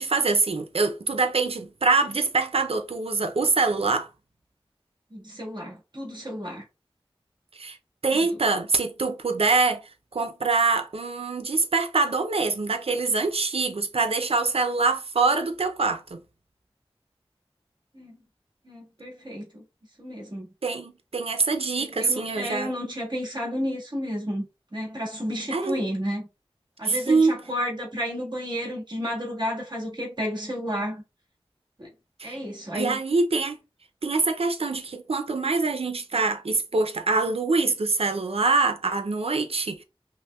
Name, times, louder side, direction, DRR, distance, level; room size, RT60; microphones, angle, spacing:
voice 1, 0.0-4.1 7.6-7.8 8.0-9.8 10.1-16.2 20.6-22.7 25.5-25.8 26.8-27.4 32.2-32.4 32.7-33.6 34.0-39.8, right 3 dB, 85° right, 0.5 m, -24 dB
voice 2, 5.1-6.6 17.9-18.2 18.6-19.6 20.0-20.5 21.8-26.3 26.8-31.0 31.8-31.9 32.2-33.0, equal, 50° right, 1.7 m, -32 dB
5.5 x 2.1 x 2.3 m
wide cardioid pair, 50°, 10 cm